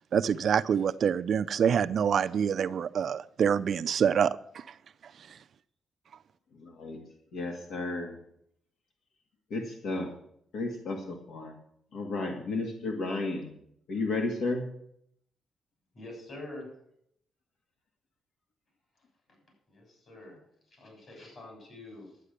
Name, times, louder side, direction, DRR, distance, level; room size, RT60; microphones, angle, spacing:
voice 1, 0.1-4.6, right 7 dB, 55° right, 12 dB, 0.4 m, -26 dB
voice 2, 6.5-7.0 7.3-8.2 9.5-10.1 10.5-11.6 11.9-13.6 13.9-14.7, left 2 dB, 75° left, 2 dB, 2.0 m, -33 dB
voice 3, 15.9-16.7 19.7-20.4 20.7-22.1, left 2 dB, 45° left, 1 dB, 6.9 m, -45 dB
11.5 x 9.1 x 6.6 m, 0.69 s
cardioid pair, 135°, 0 cm